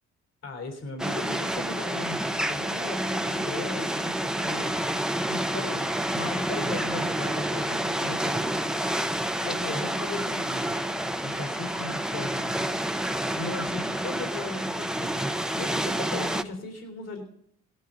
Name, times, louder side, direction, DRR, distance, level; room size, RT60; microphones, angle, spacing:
voice 1, 0.4-5.9 6.1-8.8 9.4-12.8 13.3-15.3 15.5-17.2, left 3 dB, 55° left, 4 dB, 3.7 m, -37 dB
sound 1, 1.0-16.4, right 1 dB, ahead, 0.8 m, -29 dB
18.0 x 11.5 x 3.8 m, 0.70 s
cardioid pair, 90°, 30 cm